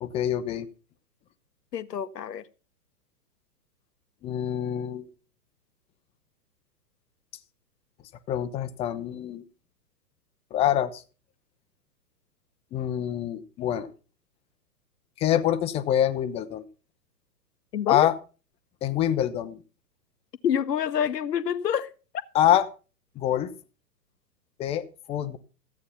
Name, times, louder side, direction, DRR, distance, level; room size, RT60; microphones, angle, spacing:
voice 1, 0.0-0.7 4.2-5.1 8.3-9.4 10.5-11.0 12.7-13.9 15.2-16.6 17.9-18.1 18.8-19.6 22.3-22.7 23.2-23.5 24.6-25.4, left 11 dB, 15° left, 0.6 m, -25 dB
voice 2, 1.7-2.4 17.7-18.1 20.4-21.9, left 8 dB, 80° left, 1.0 m, -27 dB
14.0 x 8.5 x 5.7 m
hypercardioid pair, 120°, 48 cm